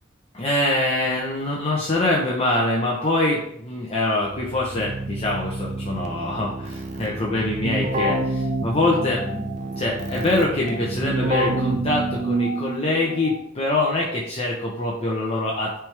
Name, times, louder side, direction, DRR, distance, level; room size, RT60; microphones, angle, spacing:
voice 1, 0.3-9.2 9.8-15.8, left 2 dB, 30° left, -3 dB, 0.8 m, -24 dB
Keyboard (musical), 4.2-12.5, right 1 dB, 35° right, 0.6 m, -29 dB
sound 1, 7.9-13.4, right 4 dB, 65° right, 1.9 m, -31 dB
9.3 x 3.5 x 3.4 m, 0.73 s
head